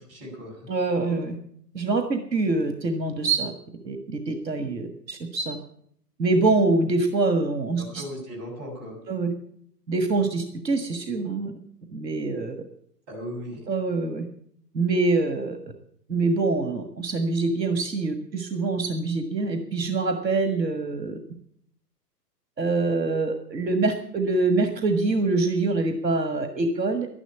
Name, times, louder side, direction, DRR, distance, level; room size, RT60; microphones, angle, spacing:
voice 1, 0.1-0.7 7.8-9.0 13.1-13.7, equal, 30° right, -1 dB, 7.3 m, -37 dB
voice 2, 0.7-1.4 1.7-3.5 3.8-4.0 4.3-5.6 6.2-8.0 9.1-9.3 9.9-11.5 11.9-12.5 13.7-14.3 14.7-15.6 16.1-21.2 22.6-27.1, right 3 dB, 80° right, 7 dB, 1.7 m, -25 dB
12.0 x 11.0 x 8.3 m, 0.66 s
figure-of-eight pair, 120°, 50 cm